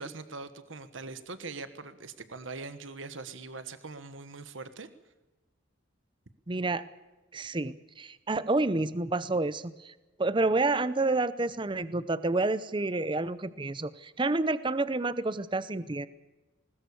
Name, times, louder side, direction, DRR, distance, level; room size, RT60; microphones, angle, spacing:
voice 1, 0.0-4.9, right 3 dB, 75° right, 11 dB, 1.3 m, -42 dB
voice 2, 6.5-6.9 7.3-9.9 10.2-16.1, right 2 dB, 25° right, 16 dB, 0.6 m, -29 dB
20.5 x 20.0 x 6.9 m, 1.1 s
head